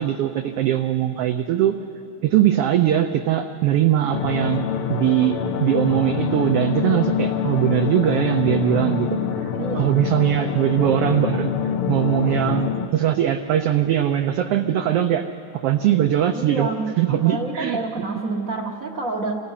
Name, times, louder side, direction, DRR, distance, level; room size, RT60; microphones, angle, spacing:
voice 1, 0.0-1.8 2.2-11.5 11.9-15.3 15.5-16.7 17.0-17.8, right 11 dB, 85° right, 6 dB, 1.3 m, -21 dB
sound 1, 4.1-12.9, left 7 dB, 70° left, 1.3 m, -25 dB
voice 2, 9.5-9.9 16.3-19.3, right 3 dB, 50° right, -2 dB, 0.9 m, -28 dB
27.0 x 17.5 x 5.7 m, 2.6 s
omnidirectional pair, 3.3 m